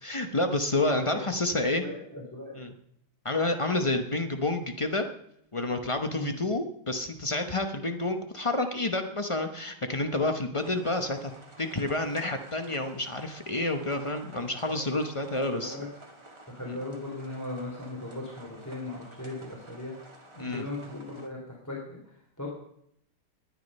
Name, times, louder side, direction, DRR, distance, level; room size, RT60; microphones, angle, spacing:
voice 1, 0.0-1.8 2.5-2.7 3.2-5.1 5.5-11.3 11.6-15.8 20.4-20.7, left 2 dB, 55° left, 6 dB, 0.3 m, -29 dB
voice 2, 1.7-2.5 6.1-6.3 14.7-14.8 15.3-15.9 16.5-20.0 20.4-22.5, left 2 dB, 10° left, -2 dB, 3.0 m, -38 dB
sound 1, 10.6-21.3, right 1 dB, 15° right, 1.7 m, -51 dB
20.0 x 10.0 x 5.4 m, 0.73 s
omnidirectional pair, 2.3 m